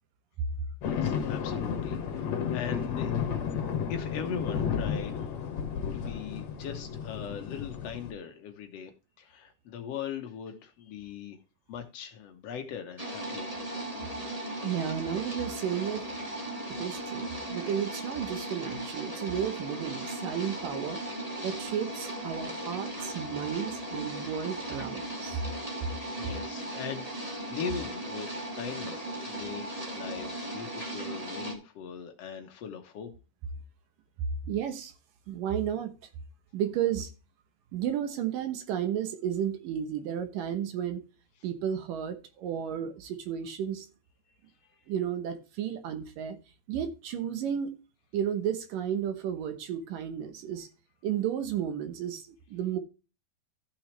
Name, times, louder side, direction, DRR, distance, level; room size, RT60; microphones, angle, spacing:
voice 1, 0.8-3.2 3.9-5.3 5.9-11.4 11.7-13.6 26.2-33.1 44.7-44.9, left 7 dB, 85° left, 1.4 m, -40 dB
sound 1, 0.8-8.1, left 7 dB, 55° left, 2.5 m, -32 dB
sound 2, 13.0-31.5, right 1 dB, 20° right, 1.0 m, -37 dB
voice 2, 14.6-16.1 16.7-21.0 21.4-25.4 34.5-34.9 35.3-35.9 36.5-37.1 37.7-41.0 41.4-43.9 44.9-46.4 46.7-47.7 48.1-50.7 51.0-52.8, right 9 dB, 70° right, 2.5 m, -33 dB
14.0 x 5.9 x 3.3 m
omnidirectional pair, 4.4 m